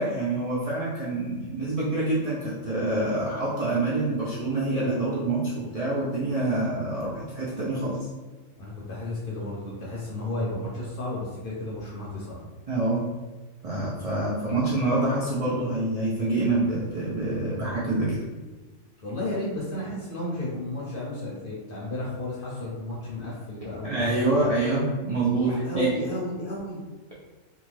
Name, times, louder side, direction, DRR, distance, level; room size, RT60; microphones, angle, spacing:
voice 1, 0.0-8.0 12.7-13.0 13.6-18.2 23.8-25.5 25.7-25.9, right 2 dB, 55° right, -7 dB, 0.4 m, -26 dB
voice 2, 8.6-12.4 19.0-24.3 25.4-26.8, left 2 dB, 55° left, -5 dB, 0.7 m, -33 dB
2.5 x 2.4 x 3.0 m, 1.2 s
omnidirectional pair, 1.4 m